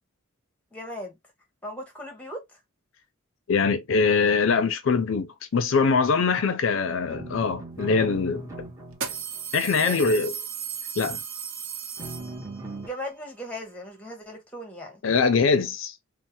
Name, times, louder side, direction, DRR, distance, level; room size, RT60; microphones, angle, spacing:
voice 1, 0.7-1.1 1.6-2.6 9.8-10.2 12.8-15.0, left 1 dB, 5° left, 1.0 m, -37 dB
voice 2, 3.5-8.5 9.5-10.3 11.0-11.2 15.0-16.0, left 5 dB, 65° left, 0.4 m, -23 dB
Bad Man, 7.1-9.5 12.0-12.9, right 2 dB, 15° right, 0.7 m, -39 dB
sound 1, 7.8-7.9 8.9-12.7, right 7 dB, 85° right, 0.7 m, -35 dB
3.1 x 2.0 x 2.8 m
head